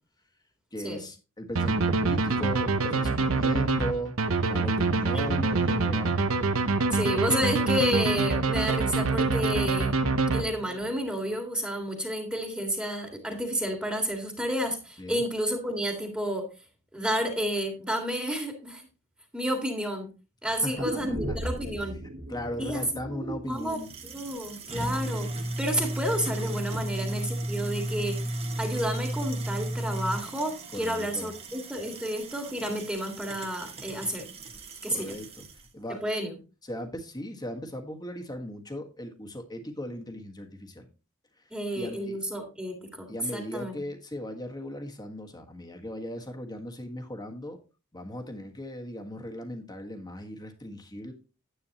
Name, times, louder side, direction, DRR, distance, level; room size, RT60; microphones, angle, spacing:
voice 1, 0.7-4.1 4.4-6.2 15.0-15.2 20.4-21.0 22.3-23.9 25.0-25.3 26.7-26.8 30.7-31.3 34.9-35.5 35.7-36.0 36.7-40.9 41.7-42.2 43.1-47.6 47.9-51.1, equal, 20° left, 4 dB, 1.6 m, -37 dB
sound 1, 1.5-10.9, right 3 dB, 85° right, 0.9 m, -25 dB
voice 2, 5.1-5.5 5.9-6.0 6.9-10.0 10.3-16.5 16.9-18.9 19.3-20.1 20.4-22.0 22.6-25.3 25.6-34.3 34.8-35.2 35.9-36.4 41.5-43.7, equal, 5° right, 3 dB, 1.9 m, -31 dB
sound 2, 20.8-24.8 25.1-25.2, right 1 dB, 65° right, 2.5 m, -37 dB
sound 3, 23.6-35.6, right 1 dB, 30° right, 1.5 m, -34 dB
9.9 x 9.0 x 2.9 m, 0.31 s
head